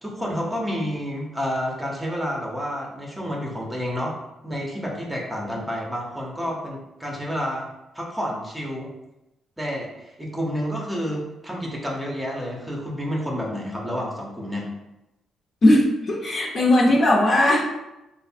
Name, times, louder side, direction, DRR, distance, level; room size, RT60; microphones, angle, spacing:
voice 1, 0.0-4.2 4.4-7.7 7.9-8.9 9.6-14.7, equal, 10° right, -2 dB, 0.8 m, -29 dB
voice 2, 15.6-17.6, left 1 dB, 45° left, -2 dB, 0.8 m, -18 dB
3.2 x 2.1 x 4.2 m, 0.94 s
cardioid pair, 90°, 0 cm